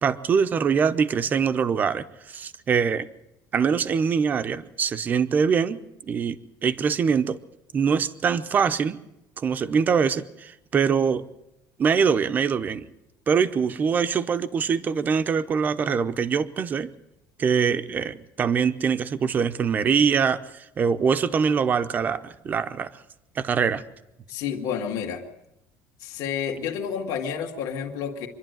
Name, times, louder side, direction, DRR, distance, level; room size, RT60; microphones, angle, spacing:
voice 1, 0.0-3.1 3.5-5.8 6.1-7.4 7.7-9.0 9.4-11.3 11.8-12.9 13.3-16.9 17.4-22.9 23.4-23.8, right 6 dB, 25° right, 12 dB, 0.7 m, -23 dB
voice 2, 24.3-25.2 26.0-28.3, left 7 dB, 60° left, 1 dB, 2.0 m, -30 dB
25.0 x 11.5 x 9.2 m, 0.90 s
cardioid pair, 170°, 7 cm